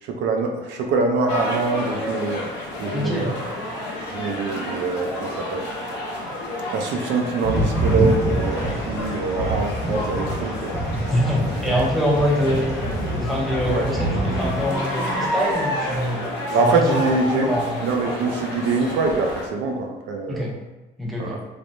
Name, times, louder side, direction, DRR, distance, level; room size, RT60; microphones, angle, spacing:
voice 1, 0.0-3.6 4.1-5.7 6.7-10.8 11.0-11.1 11.7-11.8 13.6-13.9 16.5-17.6 17.8-20.4 21.2-21.4, right 3 dB, 80° right, 3 dB, 0.4 m, -24 dB
sound 1, 1.3-19.5, left 1 dB, 80° left, 0.6 m, -30 dB
voice 2, 2.9-3.4 11.1-12.7 13.2-16.2 16.6-17.0 17.3-17.8 20.3-20.5 21.0-21.4, equal, ahead, -3 dB, 0.4 m, -24 dB
sound 2, 7.4-14.8, right 1 dB, 40° left, 1.2 m, -26 dB
3.2 x 2.0 x 2.5 m, 1.1 s
cardioid pair, 150°, 18 cm